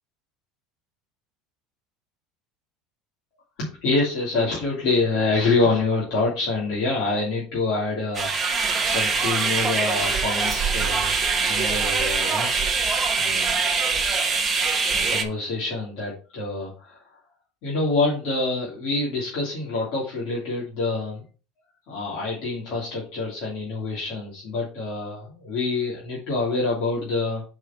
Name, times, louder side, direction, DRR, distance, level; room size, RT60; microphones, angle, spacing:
voice 1, 3.6-11.2 11.5-12.5 13.2-13.6 14.9-17.2 17.6-21.2 21.9-27.4, left 3 dB, 45° left, -6 dB, 2.9 m, -26 dB
sound 1, 8.1-15.2, right 4 dB, 15° right, 0.9 m, -23 dB
5.5 x 4.9 x 5.8 m, 0.36 s
cardioid pair, 175°, 0 cm